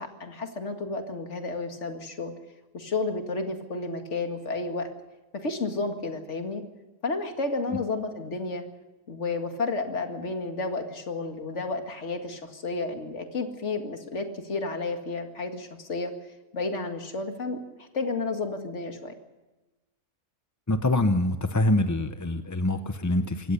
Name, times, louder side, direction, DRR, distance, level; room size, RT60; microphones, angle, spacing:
voice 1, 0.0-2.3 2.7-4.9 5.3-6.6 7.0-8.7 9.1-16.1 16.5-19.1, left 3 dB, 50° left, 5 dB, 2.3 m, -31 dB
voice 2, 20.7-23.5, left 1 dB, 20° left, 9 dB, 0.5 m, -25 dB
24.0 x 16.5 x 6.8 m, 1.1 s
omnidirectional pair, 1.6 m